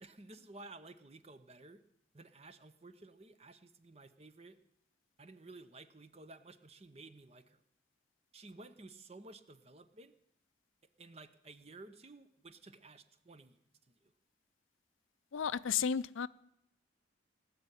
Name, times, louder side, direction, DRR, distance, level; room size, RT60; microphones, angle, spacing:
voice 1, 0.0-1.8 2.1-4.6 5.2-7.6 8.3-10.1 11.0-13.6 13.9-14.1, right 2 dB, 30° right, 12 dB, 0.8 m, -54 dB
voice 2, 15.3-16.3, left 7 dB, 85° left, 17 dB, 0.5 m, -33 dB
19.0 x 6.7 x 9.9 m, 0.79 s
head